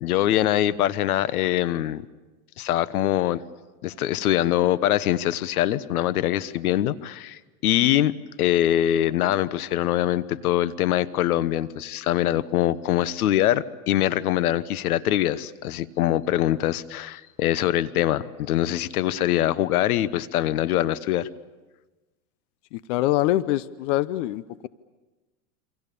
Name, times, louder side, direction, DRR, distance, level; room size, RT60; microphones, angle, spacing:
voice 1, 0.0-2.0 2.6-3.4 3.8-21.3, left 12 dB, 85° left, 16 dB, 1.2 m, -23 dB
voice 2, 22.7-24.7, left 15 dB, 55° left, 16 dB, 0.8 m, -24 dB
28.0 x 25.5 x 6.9 m, 1.2 s
supercardioid pair, 145°, 43 cm